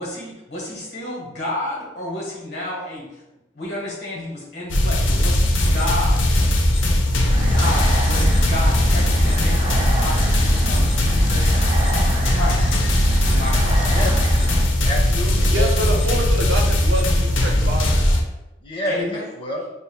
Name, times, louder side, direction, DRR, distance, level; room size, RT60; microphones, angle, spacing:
voice 1, 0.0-3.2 3.5-6.3 7.5-11.5 12.3-12.7 13.3-13.9 18.8-19.2, left 1 dB, 60° left, -5 dB, 1.5 m, -31 dB
sound 1, 4.7-18.2, left 1 dB, 90° left, 0.6 m, -18 dB
sound 2, 7.3-14.6, right 2 dB, 30° right, 0.4 m, -31 dB
voice 2, 14.8-16.2 18.6-19.6, equal, 25° left, 0 dB, 0.6 m, -29 dB
voice 3, 15.5-18.1, right 1 dB, 80° right, 1 dB, 0.7 m, -26 dB
5.3 x 2.7 x 2.3 m, 0.98 s
head